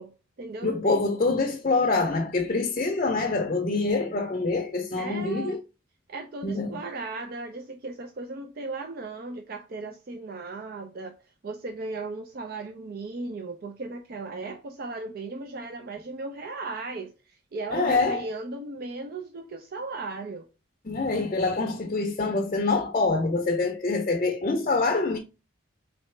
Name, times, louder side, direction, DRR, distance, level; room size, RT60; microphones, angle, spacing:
voice 1, 0.0-1.1 5.0-5.6 6.1-11.1 11.4-20.5, right 3 dB, 45° right, 0.4 m, -36 dB
voice 2, 0.6-5.6 6.4-6.8 17.7-18.2 20.8-25.2, left 3 dB, 35° left, 0.5 m, -25 dB
4.1 x 2.8 x 3.1 m
head